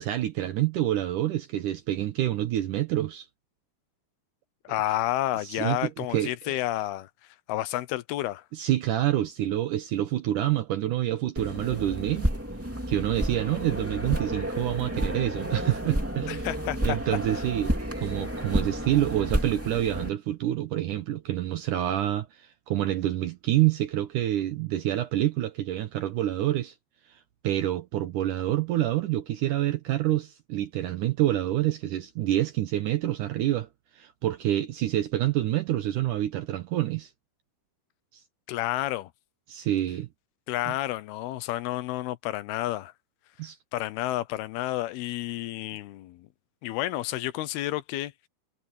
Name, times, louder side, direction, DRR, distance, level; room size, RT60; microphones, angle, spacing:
voice 1, 0.0-3.3 5.4-6.3 8.5-12.3 12.9-16.5 16.8-17.7 18.0-26.7 27.1-33.7 34.0-37.1 39.5-40.1 40.7-40.8 43.4-43.6, right 13 dB, 70° right, 2.0 m, -27 dB
voice 2, 4.6-7.1 7.5-8.4 16.2-17.0 38.5-39.1 40.5-42.9 43.7-46.3 46.6-48.1, left 15 dB, 80° left, 2.7 m, -30 dB
sound 1, 11.4-20.1, equal, 5° right, 1.6 m, -31 dB
omnidirectional pair, 4.6 m